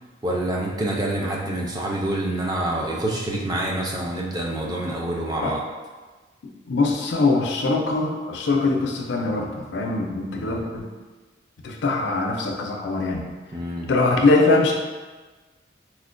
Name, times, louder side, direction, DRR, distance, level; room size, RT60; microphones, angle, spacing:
voice 1, 0.2-5.6 10.4-10.7 13.5-13.9, right 1 dB, 20° right, -3 dB, 0.3 m, -27 dB
voice 2, 6.7-10.9 11.6-13.2 13.9-14.7, left 3 dB, 70° left, 1 dB, 0.4 m, -22 dB
4.3 x 2.1 x 2.5 m, 1.3 s
head